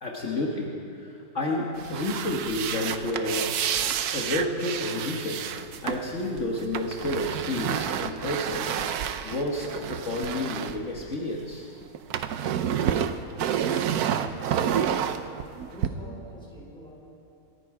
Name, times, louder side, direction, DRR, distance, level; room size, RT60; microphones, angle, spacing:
voice 1, 0.0-3.6 4.1-5.5 5.8-8.8 9.2-11.7, left 1 dB, 55° left, -2 dB, 1.7 m, -30 dB
sound 1, 1.7-11.5 11.8-15.9, right 9 dB, 85° right, 1.2 m, -29 dB
voice 2, 13.3-15.1 15.7-17.2, equal, 5° left, -5 dB, 4.3 m, -44 dB
28.5 x 9.9 x 4.9 m, 2.8 s
omnidirectional pair, 1.6 m